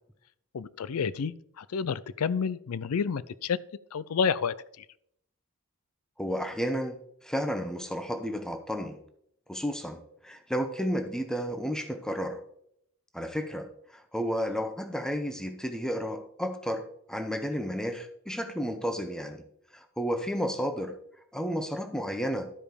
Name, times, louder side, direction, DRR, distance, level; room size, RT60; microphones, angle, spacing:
voice 1, 0.5-3.6 3.9-4.6, left 6 dB, 85° left, 18 dB, 0.4 m, -29 dB
voice 2, 6.2-7.0 7.2-9.0 9.5-12.4 13.1-19.4 19.7-20.9 21.3-22.5, equal, 5° left, 7 dB, 0.9 m, -32 dB
12.5 x 4.9 x 5.0 m, 0.70 s
head